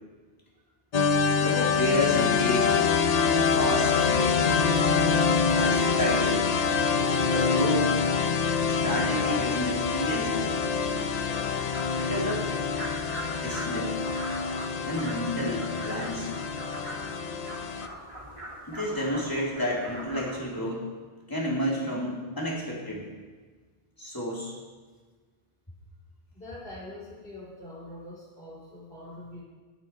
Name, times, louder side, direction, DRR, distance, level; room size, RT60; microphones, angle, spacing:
sound 1, 0.9-17.9, left 5 dB, 45° left, 0.7 m, -26 dB
voice 1, 1.4-2.8 3.2-4.4 5.5-6.5 7.3-7.9 8.6-10.5 12.0-12.4 13.4-13.9 14.8-16.3 18.7-20.9 21.3-23.1 24.0-24.5, equal, 20° left, -4 dB, 3.3 m, -30 dB
sound 2, 10.9-20.4, right 1 dB, 30° right, 2.7 m, -42 dB
voice 2, 26.3-29.4, left 1 dB, 65° left, -5 dB, 3.5 m, -43 dB
19.0 x 9.0 x 4.7 m, 1.4 s
omnidirectional pair, 1.1 m